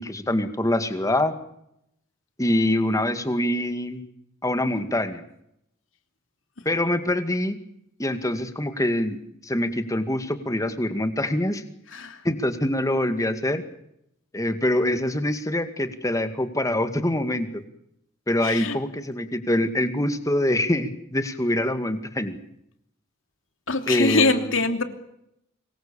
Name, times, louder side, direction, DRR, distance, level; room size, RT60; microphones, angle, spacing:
voice 1, 0.0-1.4 2.4-4.0 4.4-5.2 6.7-7.6 8.0-9.2 9.4-11.6 12.2-13.6 14.3-17.6 18.3-22.4 23.9-24.4, left 1 dB, 15° left, 9 dB, 2.2 m, -24 dB
voice 2, 11.9-12.2 18.4-18.8 23.7-24.8, left 3 dB, 75° left, 7 dB, 3.0 m, -23 dB
26.5 x 22.0 x 7.1 m, 0.77 s
head